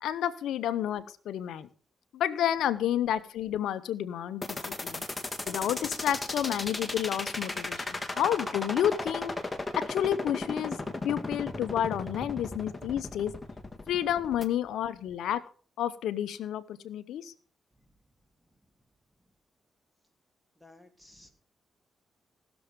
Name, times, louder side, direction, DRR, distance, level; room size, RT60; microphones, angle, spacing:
voice 1, 0.0-1.7 2.1-5.1 5.5-9.3 9.8-10.8 11.0-13.3 13.9-15.4 15.8-17.3, left 10 dB, 85° left, 14 dB, 0.8 m, -30 dB
sound 1, 4.4-14.4, left 2 dB, 20° left, 1.8 m, -35 dB
voice 2, 20.6-21.3, left 1 dB, 5° right, 6 dB, 2.9 m, -57 dB
17.0 x 7.0 x 5.2 m, 0.41 s
supercardioid pair, 60°, 0 cm